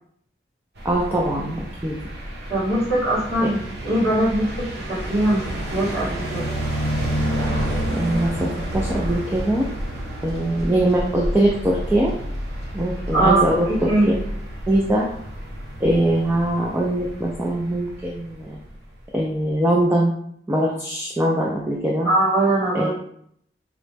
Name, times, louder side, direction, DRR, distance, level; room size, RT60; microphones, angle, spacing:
voice 1, 0.8-2.0 7.9-9.7 10.2-12.1 12.7-13.9 14.7-15.1 15.8-18.6 19.1-20.1 20.5-22.1 22.7-22.9, right 1 dB, 10° right, -2 dB, 0.4 m, -22 dB
sound 1, 0.8-18.7, equal, 75° right, 0.9 m, -30 dB
voice 2, 2.5-6.5 13.1-14.2 22.0-22.9, right 1 dB, 40° right, -14 dB, 1.5 m, -21 dB
5.0 x 2.1 x 3.3 m, 0.68 s
head